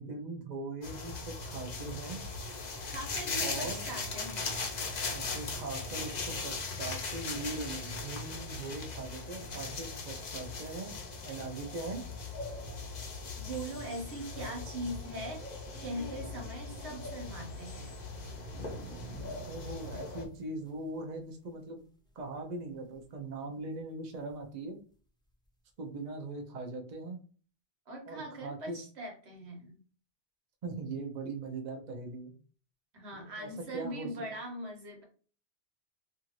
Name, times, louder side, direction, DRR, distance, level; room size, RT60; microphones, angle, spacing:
voice 1, 0.0-2.2 3.4-3.8 5.1-10.9 11.2-12.0 19.5-21.8 22.2-24.8 25.8-27.2 28.1-28.8 30.6-32.3 33.1-34.1, right 3 dB, 50° right, 4 dB, 0.7 m, -40 dB
sound 1, 0.8-20.2, left 3 dB, 50° left, 0.7 m, -39 dB
voice 2, 2.8-4.7 13.4-15.4 15.8-17.9 27.9-29.8 32.9-35.0, right 1 dB, 85° right, 1 dB, 1.3 m, -41 dB
sound 2, 18.1-21.9 22.2-22.4 22.7-23.2 24.3-24.4 25.4-25.5, right 1 dB, 5° left, 0.6 m, -50 dB
2.7 x 2.4 x 3.0 m, 0.40 s
omnidirectional pair, 1.1 m